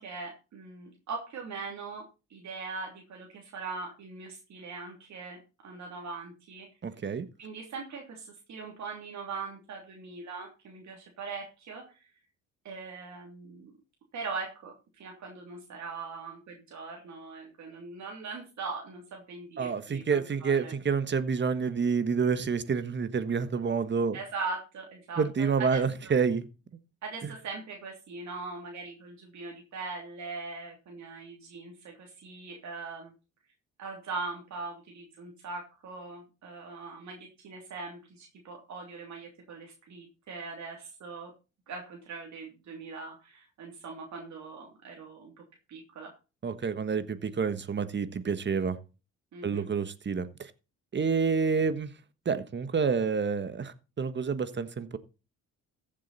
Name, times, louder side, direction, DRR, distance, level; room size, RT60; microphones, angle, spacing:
voice 1, 0.0-2.0 2.3-6.7 7.4-12.1 12.6-13.7 14.1-20.7 24.1-26.1 27.0-33.1 33.8-41.3 41.7-45.3 45.7-46.1 49.3-49.7, right 4 dB, 65° right, 3.2 m, -41 dB
voice 2, 6.8-7.3 19.6-24.2 25.2-26.5 27.2-27.3 46.4-48.8 49.4-50.5 50.9-51.9 52.2-55.0, right 5 dB, 35° right, 1.4 m, -28 dB
14.5 x 7.7 x 4.2 m
cardioid pair, 90°, 30 cm